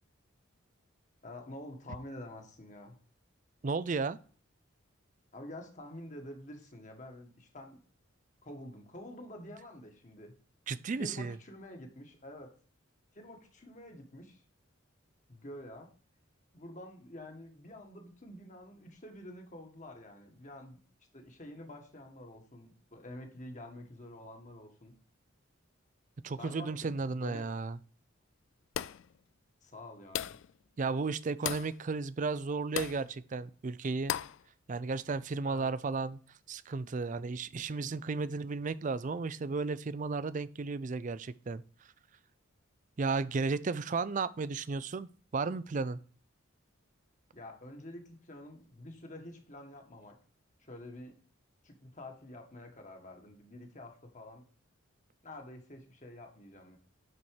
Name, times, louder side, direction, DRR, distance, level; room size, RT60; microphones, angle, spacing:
voice 1, 1.2-3.0 5.3-7.8 8.4-10.3 11.0-12.5 13.1-14.4 15.3-15.9 16.5-20.8 21.1-24.9 26.3-27.5 29.6-30.4 35.4-35.7 47.3-50.2 50.6-51.2 51.6-54.4 55.2-56.8, left 1 dB, 35° left, 3 dB, 1.6 m, -48 dB
voice 2, 3.6-4.2 10.7-11.4 26.2-27.8 30.8-34.2 34.7-36.2 36.5-41.6 43.0-46.0, right 4 dB, 40° right, 16 dB, 0.4 m, -34 dB
sound 1, 28.7-29.1 30.1-30.5 31.4-31.7 32.8-33.0 34.1-34.4, left 10 dB, 70° left, 0.3 m, -36 dB
9.5 x 4.4 x 4.8 m, 0.44 s
head